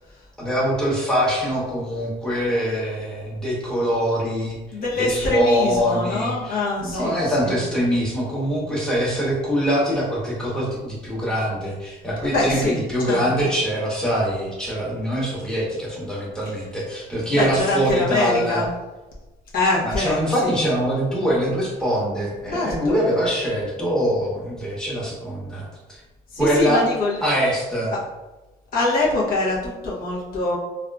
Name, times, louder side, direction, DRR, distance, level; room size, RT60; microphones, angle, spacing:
voice 1, 0.4-4.6 4.9-18.6 19.8-25.7 26.4-26.8 27.2-27.9, equal, 5° left, -5 dB, 1.0 m, -23 dB
voice 2, 4.7-7.6 12.2-13.5 17.3-18.7 19.5-20.6 22.5-23.0 26.3-27.2 27.9-28.0 28.7-30.6, left 2 dB, 60° left, -5 dB, 0.8 m, -24 dB
3.5 x 2.3 x 2.3 m, 1.1 s
cardioid pair, 110°, 17 cm